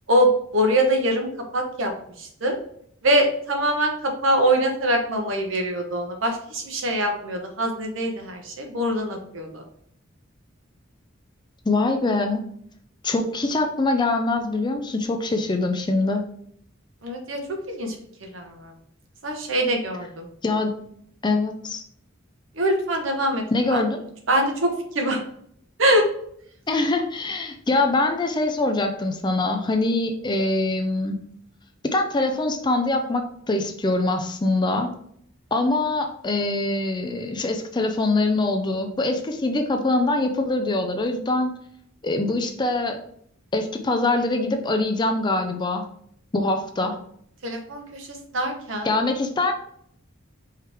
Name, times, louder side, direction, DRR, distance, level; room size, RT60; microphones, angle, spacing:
voice 1, 0.1-1.3 1.5-1.9 2.2-2.6 3.0-9.6 17.0-17.4 17.7-18.0 18.3-18.7 19.2-20.3 22.5-23.4 23.7-23.8 24.3-25.2 25.8-26.0 47.4-48.9, right 1 dB, 70° right, 3 dB, 1.0 m, -23 dB
voice 2, 11.7-12.4 13.0-16.2 20.4-20.7 21.2-21.8 23.5-24.0 26.7-31.2 31.9-34.9 35.5-41.5 42.0-43.0 43.5-45.9 46.3-47.0 48.8-49.6, left 2 dB, 20° left, 5 dB, 0.4 m, -23 dB
4.8 x 3.1 x 3.4 m, 0.66 s
head